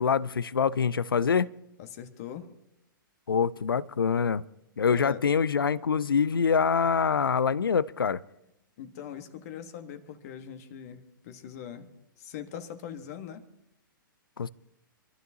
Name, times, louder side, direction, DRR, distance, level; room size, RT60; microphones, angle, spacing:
voice 1, 0.0-1.5 3.3-4.4 4.8-8.2 14.4-14.5, left 6 dB, 80° left, 0.5 m, -25 dB
voice 2, 1.8-2.5 4.9-5.4 8.8-11.9 12.2-13.4, left 9 dB, 45° left, 1.3 m, -41 dB
27.0 x 12.5 x 2.8 m
figure-of-eight pair, 120°, 12 cm